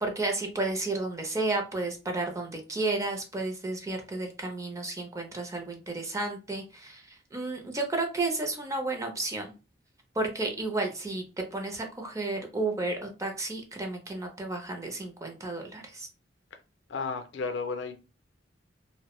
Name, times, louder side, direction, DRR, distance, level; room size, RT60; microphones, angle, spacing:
voice 1, 0.0-9.5 10.1-11.2 11.5-16.1, right 2 dB, 15° right, 0.5 m, -32 dB
voice 2, 16.9-18.0, left 4 dB, 70° left, 0.5 m, -33 dB
2.2 x 2.0 x 2.9 m
head